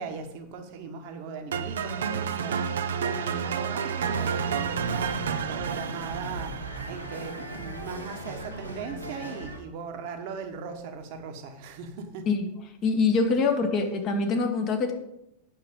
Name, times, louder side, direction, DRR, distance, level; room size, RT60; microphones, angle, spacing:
voice 1, 0.0-12.3, right 5 dB, 45° right, 5 dB, 1.3 m, -39 dB
sound 1, 1.5-7.6, right 7 dB, 65° right, 0.6 m, -30 dB
sound 2, 3.9-9.6, right 2 dB, 85° right, 1.4 m, -38 dB
voice 2, 12.8-14.9, left 4 dB, 35° left, 4 dB, 1.3 m, -24 dB
9.0 x 6.3 x 5.1 m, 0.83 s
figure-of-eight pair, 90°, 0 cm